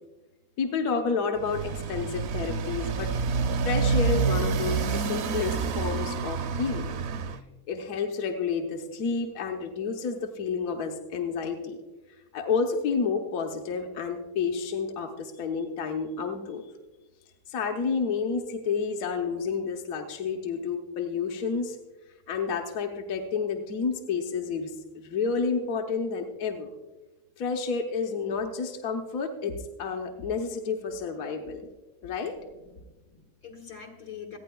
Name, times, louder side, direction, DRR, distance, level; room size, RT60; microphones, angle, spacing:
voice 1, 0.6-3.2 3.6-7.0 7.7-11.8 12.3-16.6 17.5-21.8 22.3-26.7 27.4-31.7 32.0-32.4, left 5 dB, 65° left, 3 dB, 1.2 m, -30 dB
Motorcycle, 1.4-7.4, right 5 dB, 70° right, 0.6 m, -28 dB
voice 2, 32.4-34.4, left 7 dB, 80° left, 1 dB, 2.2 m, -45 dB
26.5 x 9.3 x 2.3 m, 1.1 s
omnidirectional pair, 1.7 m